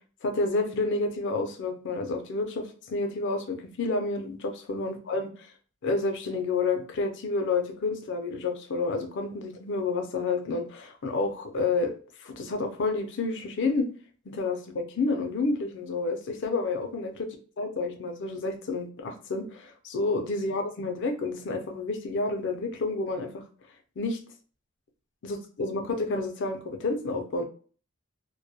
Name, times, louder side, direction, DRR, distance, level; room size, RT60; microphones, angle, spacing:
voice 1, 0.2-5.5 5.8-11.9 12.2-13.9 14.3-17.3 17.6-23.4 24.0-24.2 25.2-27.4, left 3 dB, 60° left, 5 dB, 0.5 m, -29 dB
2.2 x 2.1 x 2.6 m, 0.41 s
head